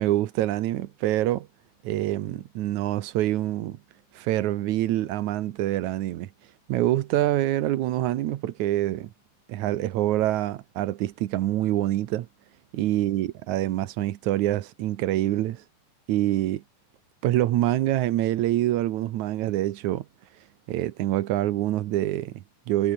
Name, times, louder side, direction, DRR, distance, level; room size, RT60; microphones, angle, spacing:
voice 1, 0.0-1.5 1.8-3.8 4.2-6.3 6.7-9.1 9.5-12.3 12.7-15.6 16.1-16.6 17.2-20.1 20.7-22.9, right 14 dB, 85° right, 1.6 m, -25 dB
omnidirectional pair, 4.8 m